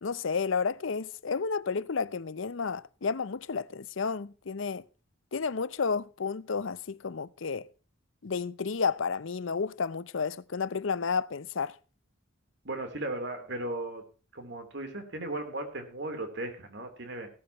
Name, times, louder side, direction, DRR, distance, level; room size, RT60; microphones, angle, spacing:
voice 1, 0.0-4.8 5.3-7.7 8.2-11.8, left 5 dB, 65° left, 0.6 m, -31 dB
voice 2, 12.6-14.0 14.3-17.3, right 2 dB, 55° right, 3.7 m, -36 dB
17.0 x 13.0 x 3.1 m
head